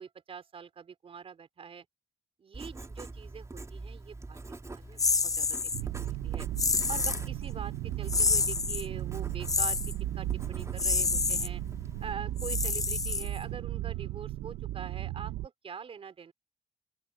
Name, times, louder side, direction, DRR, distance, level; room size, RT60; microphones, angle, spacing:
voice 1, 0.0-1.9 2.4-6.5 6.9-9.8 10.1-11.6 12.0-16.3, right 6 dB, 55° right, 4.4 m, -44 dB
Writing, 2.5-12.1, right 3 dB, 25° right, 3.1 m, -45 dB
sound 1, 5.0-5.8 6.6-7.2 8.1-8.9 9.4-9.9 10.8-11.5 12.4-13.5, left 4 dB, 30° left, 0.6 m, -28 dB
sound 2, 5.7-15.5, right 15 dB, 90° right, 1.3 m, -36 dB
open air
supercardioid pair, 55°, 12 cm